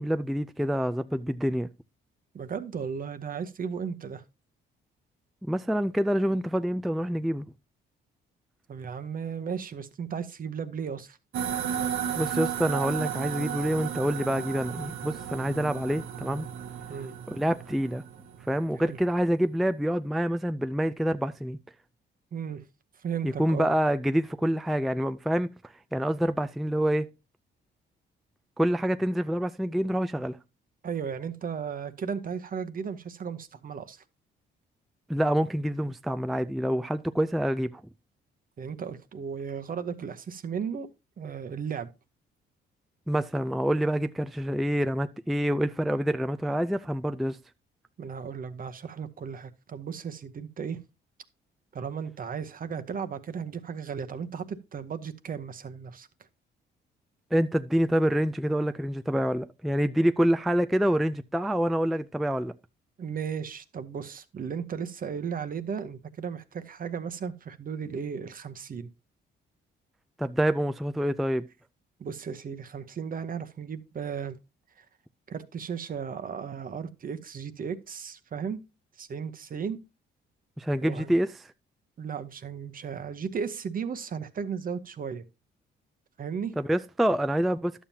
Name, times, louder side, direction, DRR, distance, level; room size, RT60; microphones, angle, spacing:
voice 1, 0.0-1.7 5.5-7.5 12.2-16.5 17.3-18.0 18.5-21.6 23.2-25.5 25.9-27.1 28.6-30.4 35.1-37.8 43.1-47.4 57.3-62.5 70.2-71.5 80.6-81.5 86.6-87.8, equal, ahead, 0.3 m, -27 dB
voice 2, 2.3-4.2 8.7-11.2 16.9-17.1 18.8-19.0 22.3-22.7 23.0-23.7 30.8-34.0 38.6-40.9 41.2-41.9 48.0-50.8 51.7-56.1 63.0-68.9 72.0-74.4 74.8-74.9 75.3-78.6 79.0-79.8 80.8-81.1 82.0-85.2 86.2-86.5, right 6 dB, 45° right, 0.9 m, -35 dB
sound 1, 11.3-19.0, right 9 dB, 80° right, 1.1 m, -34 dB
11.0 x 7.3 x 2.8 m
cardioid pair, 90°, 20 cm